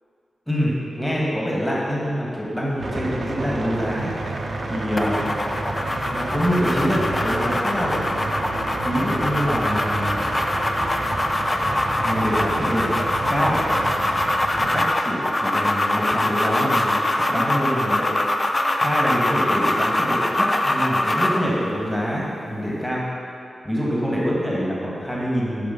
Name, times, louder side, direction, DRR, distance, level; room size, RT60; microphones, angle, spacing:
voice 1, 0.5-4.1 4.7-5.4 6.0-8.0 8.7-10.3 12.0-13.7 14.6-18.1 18.8-23.0 23.6-25.7, equal, 5° left, -5 dB, 1.9 m, -25 dB
sound 1, 2.8-14.9, right 2 dB, 60° right, 1.0 m, -29 dB
sound 2, 5.0-21.5, left 1 dB, 25° left, 0.6 m, -23 dB
11.0 x 5.0 x 5.4 m, 2.6 s
wide cardioid pair, 90°, 0 cm